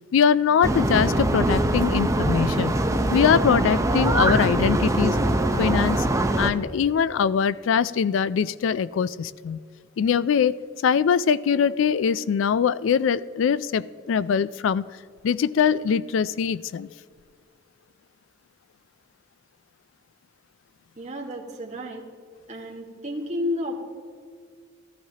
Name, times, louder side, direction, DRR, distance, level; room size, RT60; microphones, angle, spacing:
voice 1, 0.1-2.8 3.1-5.2 5.6-6.1 6.4-9.6 10.0-14.9 15.2-16.9, left 7 dB, 75° left, 0.3 m, -22 dB
sound 1, 0.6-6.5, right 1 dB, 15° right, 0.6 m, -22 dB
voice 2, 21.0-22.1 22.5-23.7, left 1 dB, 35° right, 1.6 m, -31 dB
14.0 x 13.0 x 2.8 m
head